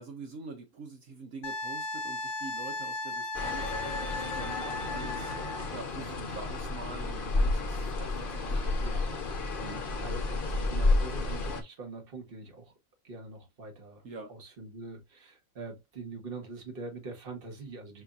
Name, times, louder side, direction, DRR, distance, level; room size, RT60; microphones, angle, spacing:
voice 1, 0.0-3.7 4.1-5.3 5.7-8.8 9.6-9.9 14.0-14.3, right 3 dB, 70° right, 1.3 m, -45 dB
Wind instrument woodwind instrument, 1.4-5.7 8.4-8.5, left 2 dB, 70° left, 1.2 m, -36 dB
sound 1, 3.3-11.6, left 2 dB, 45° left, 0.9 m, -31 dB
voice 2, 8.4-9.1 9.9-12.7 13.0-14.0 14.3-18.0, right 3 dB, 45° right, 1.5 m, -44 dB
6.1 x 2.7 x 2.4 m
omnidirectional pair, 1.4 m